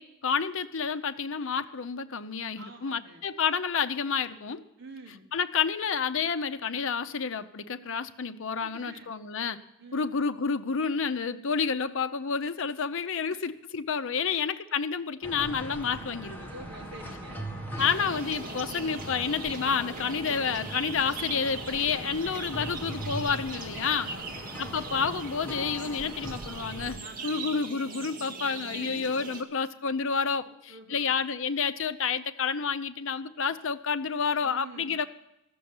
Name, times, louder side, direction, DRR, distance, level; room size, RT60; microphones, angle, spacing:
voice 1, 0.0-4.6 5.3-9.6 9.9-16.5 17.8-24.1 24.6-35.1, left 6 dB, 65° left, 11 dB, 0.7 m, -29 dB
voice 2, 2.6-3.2 4.8-5.3 8.6-9.1 9.8-10.2 13.3-13.5 14.2-14.4 16.5-17.5 23.9-24.6 27.0-27.5 28.7-29.4 30.5-31.2 34.4-35.1, right 2 dB, 65° right, -1 dB, 1.6 m, -47 dB
sound 1, 15.2-27.0, right 1 dB, 10° left, 1.7 m, -40 dB
sound 2, 17.8-29.4, right 4 dB, 40° right, 1.9 m, -41 dB
14.0 x 7.0 x 9.5 m, 0.85 s
head